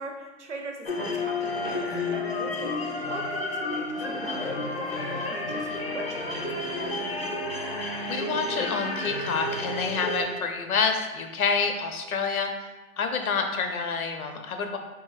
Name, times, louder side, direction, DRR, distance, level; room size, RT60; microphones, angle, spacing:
voice 1, 0.0-7.1, right 2 dB, 55° right, 2 dB, 0.6 m, -40 dB
sound 1, 0.9-10.2, left 2 dB, 45° left, 0.4 m, -31 dB
voice 2, 8.1-12.5 13.0-14.8, left 5 dB, 80° left, 5 dB, 0.7 m, -28 dB
4.1 x 3.0 x 2.3 m, 1.1 s
hypercardioid pair, 180°, 43 cm